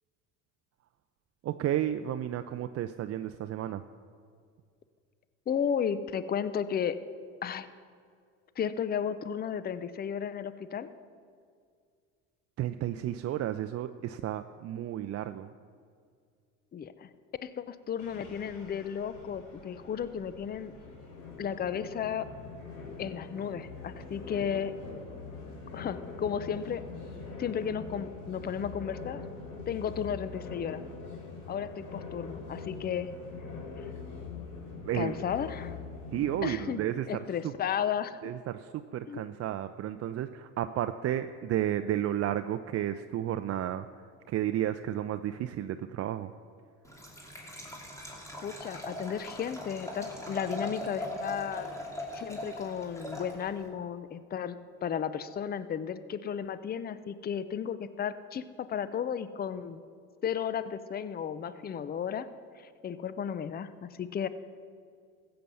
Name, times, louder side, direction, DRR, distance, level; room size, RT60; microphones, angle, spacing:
voice 1, 1.4-3.8 12.6-15.5 34.8-35.1 36.1-37.1 37.4-37.5 38.2-43.9 44.3-46.3, right 11 dB, 45° right, 9 dB, 0.5 m, -32 dB
voice 2, 5.5-7.0 7.4-7.7 8.6-10.9 16.7-17.1 17.4-20.7 21.4-22.3 23.0-24.7 25.7-26.8 27.4-29.2 29.7-30.8 31.5-33.1 34.9-35.8 36.4-36.8 37.1-38.2 39.1-39.3 48.4-51.7 52.1-59.8 60.2-62.3 62.6-64.3, left 8 dB, 25° left, 14 dB, 0.6 m, -34 dB
sound 1, 18.0-36.6, left 4 dB, 70° left, 4.1 m, -43 dB
Liquid, 46.8-53.7, left 1 dB, 10° left, 2.8 m, -40 dB
14.5 x 7.8 x 7.0 m, 2.1 s
supercardioid pair, 90°, 35 cm